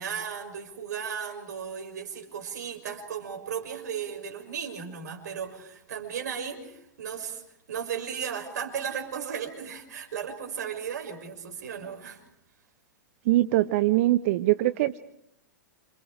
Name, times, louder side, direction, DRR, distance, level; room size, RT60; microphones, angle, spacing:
voice 1, 0.0-7.4 7.7-12.2, right 7 dB, 60° right, 3 dB, 6.3 m, -35 dB
voice 2, 13.3-15.0, right 16 dB, 45° right, 12 dB, 0.8 m, -22 dB
28.5 x 28.0 x 5.0 m, 0.75 s
figure-of-eight pair, 105°, 10 cm